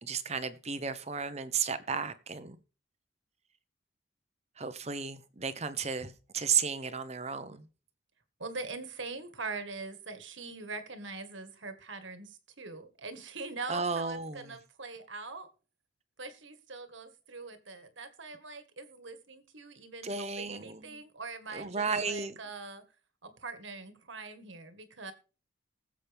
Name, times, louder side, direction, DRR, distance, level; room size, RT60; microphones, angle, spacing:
voice 1, 0.0-2.6 4.6-7.6 13.7-14.5 20.0-21.0 21.5-22.4, right 6 dB, 30° right, 1.0 m, -33 dB
voice 2, 8.4-15.5 16.2-22.8 23.2-25.1, right 3 dB, 65° right, 1.7 m, -43 dB
20.0 x 7.5 x 3.5 m
head